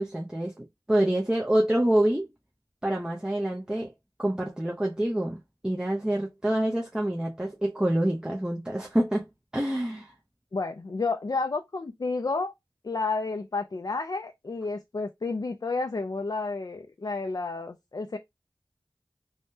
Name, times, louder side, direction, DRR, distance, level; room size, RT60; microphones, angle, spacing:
voice 1, 0.0-2.3 2.8-3.9 4.2-10.1, right 1 dB, 10° right, 0.6 m, -27 dB
voice 2, 10.5-12.5 12.8-18.2, left 3 dB, 50° left, 0.4 m, -31 dB
3.4 x 2.2 x 2.7 m
wide cardioid pair, 50°, 8 cm